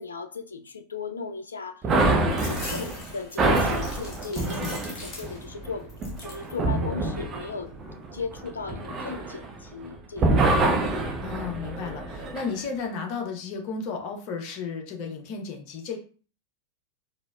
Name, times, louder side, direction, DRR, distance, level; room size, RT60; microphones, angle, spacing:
voice 1, 0.0-5.9 6.2-7.7 8.1-10.5, left 4 dB, 75° left, 0.4 m, -37 dB
sound 1, 1.8-9.9 10.2-12.5, right 2 dB, 25° right, 0.5 m, -26 dB
sound 2, 2.3-5.6 5.9-6.5 7.0-7.7, left 2 dB, 25° left, 1.2 m, -42 dB
voice 2, 11.2-16.0, left 5 dB, 45° left, 0.7 m, -33 dB
4.0 x 2.0 x 2.3 m
figure-of-eight pair, 90°, 0 cm